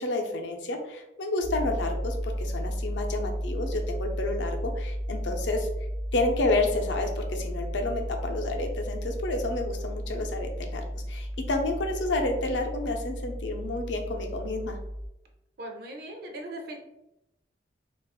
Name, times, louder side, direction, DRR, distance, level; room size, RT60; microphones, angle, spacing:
voice 1, 0.0-5.7 6.1-14.8, left 2 dB, 80° left, 4 dB, 0.5 m, -30 dB
sound 1, 1.4-15.1, equal, 15° left, 0.4 m, -33 dB
voice 2, 15.6-16.8, right 1 dB, 55° right, 2 dB, 0.5 m, -39 dB
2.4 x 2.4 x 3.5 m, 0.89 s
head